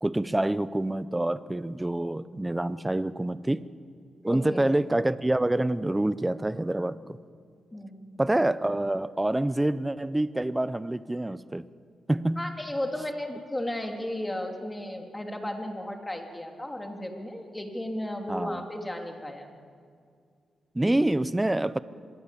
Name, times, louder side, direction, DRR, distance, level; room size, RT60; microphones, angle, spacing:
voice 1, 0.0-3.6 4.2-7.2 8.2-11.7 12.1-12.5 18.3-18.6 20.7-21.8, right 1 dB, 10° right, 15 dB, 0.7 m, -27 dB
voice 2, 4.3-4.7 7.7-8.2 12.4-19.5, left 1 dB, 15° left, 3 dB, 3.1 m, -34 dB
25.0 x 22.0 x 8.5 m, 2.2 s
cardioid pair, 100°, 0 cm